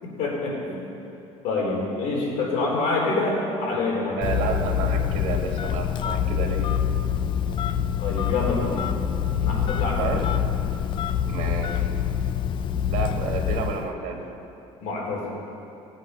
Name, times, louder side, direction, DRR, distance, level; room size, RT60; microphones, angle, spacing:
voice 1, 0.0-0.8 1.4-4.2 8.0-8.9 9.4-10.3 14.8-15.3, left 3 dB, 65° left, -3 dB, 3.6 m, -26 dB
Telephone, 4.2-13.9, left 9 dB, 40° left, 0.5 m, -25 dB
voice 2, 4.2-6.7 10.0-10.3 11.3-11.9 12.9-14.2, right 5 dB, 70° right, 2 dB, 1.8 m, -30 dB
18.0 x 8.2 x 5.4 m, 2.8 s
cardioid pair, 150°, 12 cm